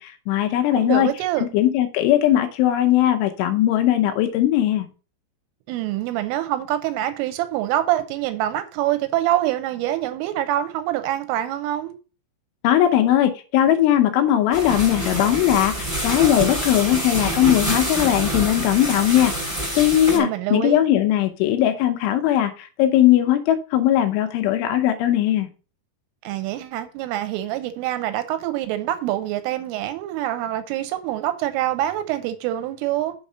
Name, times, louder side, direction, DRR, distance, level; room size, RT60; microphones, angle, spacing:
voice 1, 0.0-1.1 1.4-4.9 12.6-19.3 19.8-25.5, left 12 dB, 80° left, 3.0 m, -19 dB
voice 2, 0.7-1.5 5.7-11.9 20.1-20.8 26.2-33.2, right 13 dB, 80° right, 3.2 m, -25 dB
sound 1, 14.5-20.2, right 1 dB, 5° right, 3.2 m, -26 dB
7.2 x 5.3 x 5.5 m
omnidirectional pair, 5.9 m